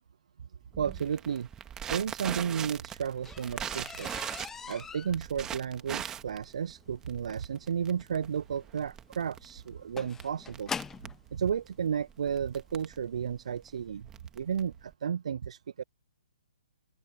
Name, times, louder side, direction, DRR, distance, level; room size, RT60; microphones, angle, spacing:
Crackle, 0.7-14.9, right 9 dB, 15° right, 1.8 m, -41 dB
voice 1, 0.8-1.5 1.9-4.1 4.7-10.7 11.3-14.1 14.3-15.8, right 7 dB, 65° right, 0.3 m, -33 dB
sound 1, 2.3-11.2 12.1-12.2 12.7-13.0 13.2-13.3 13.7-13.8, left 6 dB, 10° left, 0.4 m, -43 dB
open air
hypercardioid pair, 140°, 4 cm